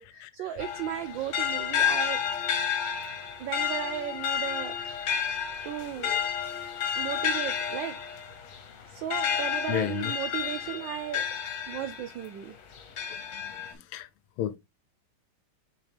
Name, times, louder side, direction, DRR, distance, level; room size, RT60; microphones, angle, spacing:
voice 1, 0.0-2.2 3.1-4.8 5.6-6.1 7.0-8.0 8.9-11.2 11.7-12.6, right 11 dB, 70° right, 1.2 m, -35 dB
sound 1, 0.6-12.3 12.7-13.7, left 8 dB, 60° left, 1.6 m, -31 dB
voice 2, 9.7-10.1 13.9-14.1 14.4-14.6, left 11 dB, 90° left, 1.6 m, -30 dB
5.9 x 5.3 x 3.3 m
omnidirectional pair, 2.4 m